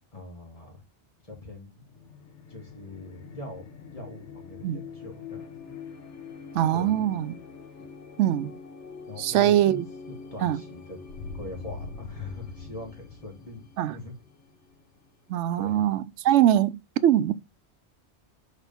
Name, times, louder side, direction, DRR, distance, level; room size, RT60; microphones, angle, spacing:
voice 1, 0.1-0.8 1.2-1.8 2.5-5.7 6.7-7.1 9.1-9.8 10.3-11.0 11.3-14.1 15.6-15.9, left 2 dB, 30° left, 2.7 m, -42 dB
sound 1, 1.8-15.3, left 5 dB, 85° left, 1.3 m, -44 dB
voice 2, 6.5-7.3 8.2-8.5 9.2-9.9 10.4-10.6 13.8-14.0 15.3-17.3, right 12 dB, 85° right, 0.9 m, -22 dB
6.6 x 4.9 x 3.5 m
omnidirectional pair, 1.2 m